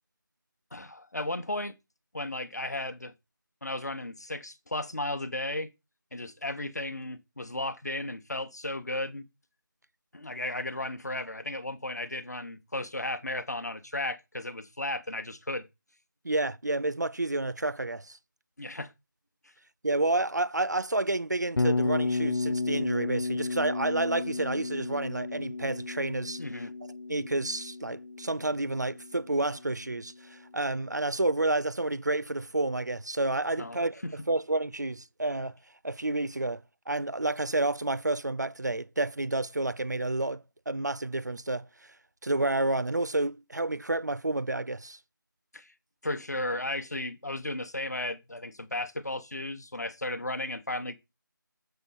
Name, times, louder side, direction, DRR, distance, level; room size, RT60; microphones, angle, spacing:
voice 1, 0.7-1.7 2.1-3.1 3.6-5.7 6.1-9.2 10.1-15.7 18.6-18.9 26.4-26.7 33.6-33.8 34.0-34.1 45.5-45.7 46.0-50.9, left 1 dB, 50° left, 1.0 m, -34 dB
voice 2, 16.2-18.2 19.8-26.4 27.1-34.0 34.3-35.5 35.8-40.4 40.7-41.6 42.2-45.0, right 2 dB, 55° right, 0.5 m, -30 dB
Bass guitar, 21.6-29.6, left 3 dB, 90° left, 0.5 m, -33 dB
6.9 x 6.6 x 4.1 m
figure-of-eight pair, 180°, 11 cm